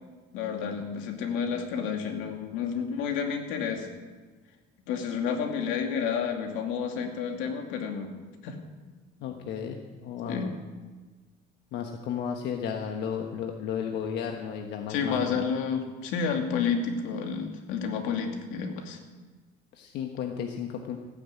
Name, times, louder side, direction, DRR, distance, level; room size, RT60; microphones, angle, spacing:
voice 1, 0.3-3.9 4.9-8.1 8.4-8.6 10.3-10.5 14.9-19.0, left 6 dB, 85° left, 3 dB, 2.5 m, -30 dB
voice 2, 9.2-10.5 11.7-15.5 19.7-21.0, left 7 dB, 60° left, 3 dB, 1.3 m, -34 dB
15.5 x 9.8 x 8.4 m, 1.3 s
cardioid pair, 150°, 20 cm